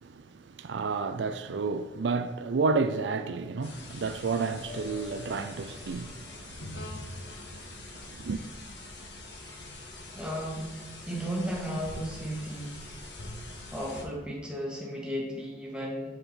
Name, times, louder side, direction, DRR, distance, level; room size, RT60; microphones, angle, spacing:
voice 1, 0.0-6.8 7.4-7.8 8.1-8.5, right 4 dB, 75° right, 0.4 m, -31 dB
sound 1, 3.6-14.0, left 1 dB, 80° left, 1.7 m, -44 dB
sound 2, 4.6-6.5, left 7 dB, 45° left, 2.2 m, -49 dB
voice 2, 10.1-10.7 11.1-13.0 13.7-16.2, equal, 5° right, 2.2 m, -34 dB
8.4 x 6.7 x 4.4 m
head